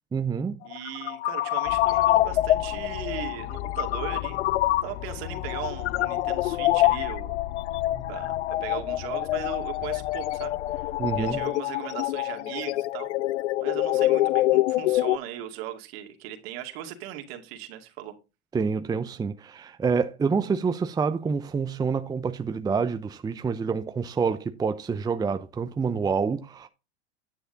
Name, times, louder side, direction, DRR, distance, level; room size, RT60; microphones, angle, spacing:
voice 1, 0.1-0.6 7.9-8.0 11.0-11.4 18.5-26.7, right 5 dB, 10° right, 0.6 m, -27 dB
voice 2, 0.6-4.4 4.8-7.3 8.1-10.9 11.2-13.1 13.6-18.1, right 12 dB, 60° right, 2.3 m, -38 dB
sound 1, 0.7-15.2, left 16 dB, 85° left, 0.5 m, -26 dB
sound 2, 1.7-11.5, left 13 dB, 60° left, 0.9 m, -39 dB
10.0 x 7.0 x 3.9 m
hypercardioid pair, 115°, 34 cm